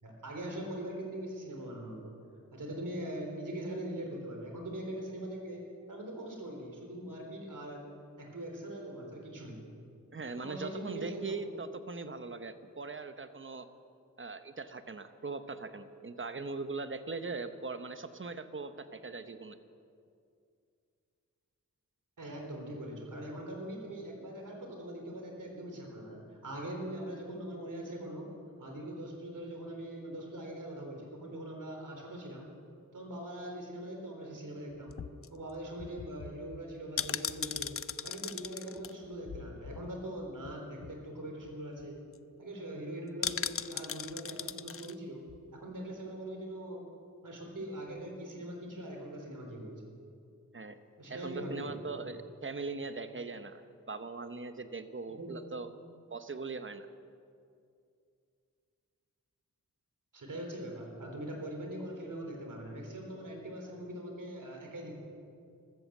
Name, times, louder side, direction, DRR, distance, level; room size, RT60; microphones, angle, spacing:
voice 1, 0.0-2.1 2.5-7.9 8.2-9.7 10.3-11.5 22.2-28.3 28.6-32.5 32.9-35.0 35.3-37.7 38.0-42.0 42.4-45.2 45.5-46.9 47.2-49.8 51.0-51.8 55.2-55.4 60.1-65.1, right 1 dB, 70° right, 1 dB, 3.7 m, -42 dB
voice 2, 10.1-13.7 14.2-19.6 50.5-50.8 51.1-55.7 56.1-56.9, right 4 dB, 40° right, 10 dB, 1.0 m, -40 dB
sound 1, 34.9-40.1 40.4-40.5 40.8-41.1 41.4-41.5 41.8-42.2 43.2-44.9 45.3-45.4, left 7 dB, 45° left, 0.5 m, -39 dB
14.0 x 13.5 x 7.2 m, 2.4 s
wide cardioid pair, 80°, 32 cm